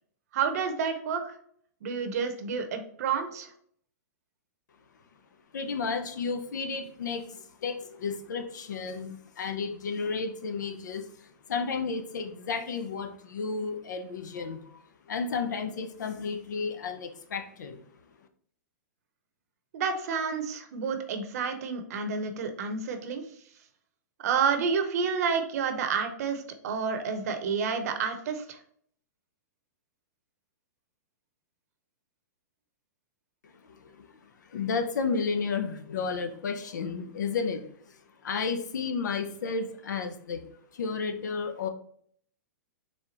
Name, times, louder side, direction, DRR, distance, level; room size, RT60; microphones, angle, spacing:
voice 1, 0.3-1.3 1.8-3.5 19.7-23.2 24.2-28.6, right 6 dB, 60° right, 7 dB, 0.8 m, -29 dB
voice 2, 5.5-14.8 15.1-17.9 33.4-41.7, left 5 dB, 85° left, 7 dB, 0.7 m, -33 dB
4.2 x 3.4 x 2.9 m, 0.63 s
hypercardioid pair, 140°, 10 cm